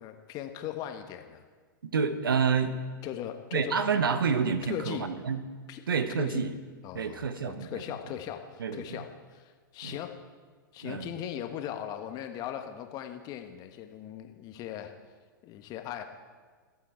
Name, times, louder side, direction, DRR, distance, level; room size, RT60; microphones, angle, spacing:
voice 1, 0.0-1.4 3.0-3.8 4.7-5.1 5.7-5.8 6.2-6.4 6.8-10.1 10.7-14.9 15.4-16.0, left 11 dB, 35° left, 6 dB, 1.4 m, -39 dB
voice 2, 1.8-2.7 3.5-5.4 5.9-6.5 6.9-7.8 8.6-9.0 9.8-10.0 10.8-11.1, right 6 dB, 80° right, 11 dB, 1.1 m, -28 dB
24.0 x 8.4 x 4.6 m, 1.5 s
hypercardioid pair, 110°, 11 cm